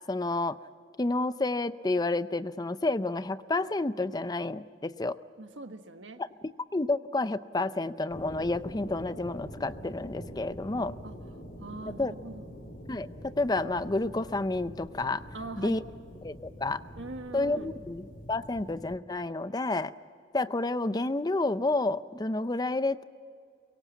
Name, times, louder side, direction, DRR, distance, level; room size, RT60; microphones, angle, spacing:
voice 1, 0.1-0.6 1.0-5.2 6.4-11.0 12.0-12.1 12.9-15.2 15.6-15.8 16.2-16.8 17.3-19.9 20.3-23.0, left 2 dB, 20° left, 14 dB, 0.5 m, -30 dB
voice 2, 5.4-6.2 11.0-11.2 11.6-12.4 15.3-15.8 17.0-17.7, right 3 dB, 85° right, 7 dB, 1.5 m, -41 dB
sound 1, 8.1-19.0, equal, 45° left, 3.2 m, -45 dB
23.0 x 23.0 x 7.2 m, 2.2 s
head